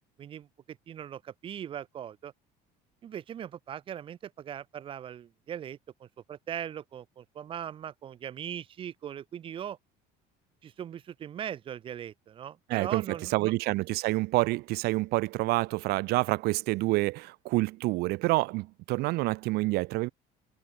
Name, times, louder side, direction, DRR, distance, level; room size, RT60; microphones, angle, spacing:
voice 1, 0.2-2.3 3.0-9.8 10.6-13.5, right 9 dB, 30° right, 0.8 m, -40 dB
voice 2, 12.7-20.1, right 21 dB, 60° right, 0.7 m, -28 dB
cardioid pair, 165°, 18 cm